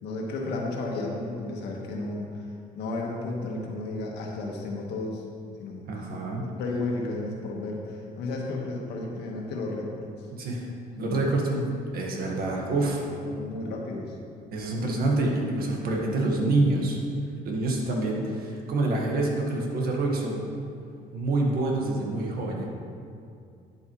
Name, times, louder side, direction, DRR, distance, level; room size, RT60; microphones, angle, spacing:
voice 1, 0.0-2.5 2.7-5.2 5.6-5.9 6.5-10.3 10.9-11.4 13.2-14.1, left 2 dB, 80° left, -1 dB, 1.6 m, -33 dB
voice 2, 5.9-6.5 10.3-10.7 11.0-11.6 11.9-13.0 14.5-17.0 17.4-20.4 21.1-22.7, right 2 dB, 60° right, -1 dB, 1.7 m, -27 dB
10.5 x 7.7 x 3.2 m, 2.5 s
cardioid pair, 110°, 17 cm